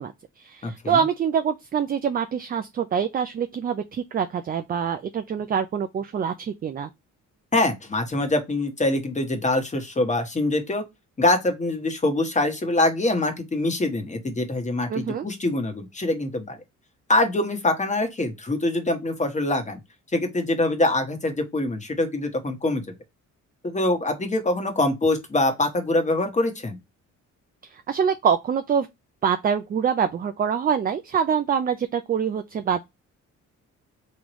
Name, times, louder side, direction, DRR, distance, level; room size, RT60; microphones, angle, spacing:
voice 1, 0.0-6.9 14.9-15.3 27.7-28.9 29.2-32.8, right 7 dB, 30° right, 0.4 m, -25 dB
voice 2, 0.6-1.0 7.5-10.8 11.2-16.6 17.1-19.8 20.1-22.8 23.6-26.8, left 2 dB, 25° left, 1.2 m, -24 dB
3.7 x 3.2 x 3.0 m
cardioid pair, 90°, 30 cm